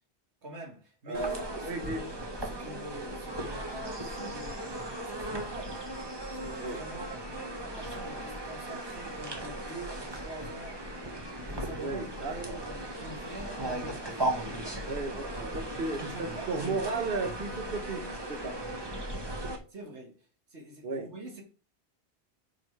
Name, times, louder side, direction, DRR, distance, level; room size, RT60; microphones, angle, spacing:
voice 1, 0.4-1.3 1.7-5.9 6.3-14.9 15.9-17.1 19.7-21.4, right 2 dB, 85° right, 2.0 m, -45 dB
sound 1, 1.1-19.6, right 1 dB, 25° right, 1.0 m, -37 dB
voice 2, 1.1-2.0 6.6-6.8 11.8-12.6 14.9-18.6 20.8-21.1, right 3 dB, 55° right, 1.2 m, -35 dB
6.0 x 5.2 x 4.6 m
omnidirectional pair, 1.1 m